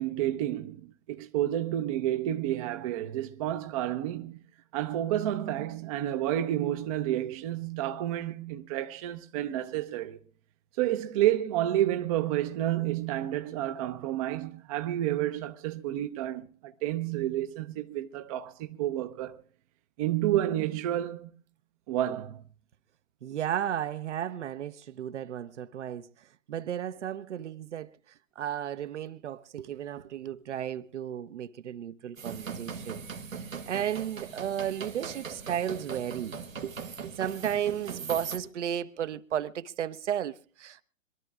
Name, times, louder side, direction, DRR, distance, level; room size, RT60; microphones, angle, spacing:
voice 1, 0.0-4.4 4.7-10.2 10.8-19.4 20.0-21.3 21.9-22.4, right 13 dB, 25° right, 0.7 m, -30 dB
voice 2, 23.2-26.1 26.5-27.9 28.4-33.0 33.7-36.3 36.6-40.8, right 10 dB, 60° right, 1.0 m, -34 dB
sound 1, 32.2-38.4, right 6 dB, 90° right, 2.0 m, -40 dB
26.0 x 12.0 x 2.4 m
hypercardioid pair, 130°, 39 cm